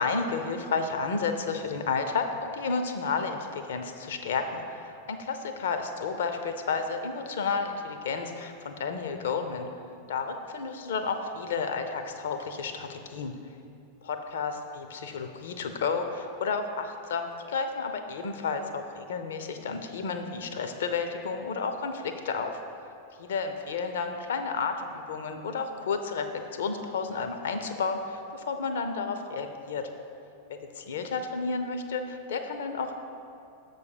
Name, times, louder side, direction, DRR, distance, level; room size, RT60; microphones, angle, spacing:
voice 1, 0.0-9.7 10.1-13.3 14.0-22.6 23.2-29.9 30.5-32.9, left 5 dB, 60° left, 7 dB, 0.6 m, -31 dB
6.9 x 4.1 x 6.6 m, 2.6 s
figure-of-eight pair, 90°, 0 cm